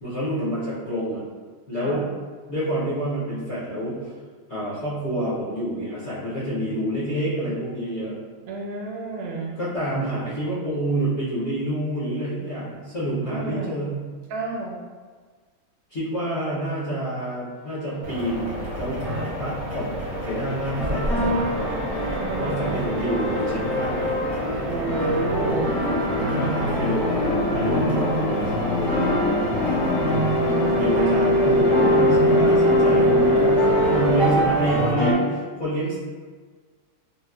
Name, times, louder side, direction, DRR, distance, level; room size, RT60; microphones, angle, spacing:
voice 1, 0.0-1.2 1.7-2.1 2.5-4.1 4.5-8.2 9.5-13.9 15.9-19.1 19.4-19.9 20.2-21.8 22.4-24.1 26.4-30.0 30.3-36.0, right 1 dB, 60° left, -11 dB, 0.7 m, -28 dB
voice 2, 8.5-9.6 13.3-13.7 14.3-14.8 22.2-23.0 24.7-25.7 30.7-31.6 33.0-33.8, right 2 dB, 75° right, -1 dB, 1.3 m, -31 dB
sound 1, 18.0-34.9, equal, 60° right, 0.6 m, -32 dB
sound 2, 18.1-34.3, left 1 dB, 85° left, 1.6 m, -25 dB
sound 3, 19.0-19.2 20.8-35.1, equal, ahead, 0.4 m, -25 dB
4.0 x 2.1 x 2.3 m, 1.5 s
omnidirectional pair, 2.2 m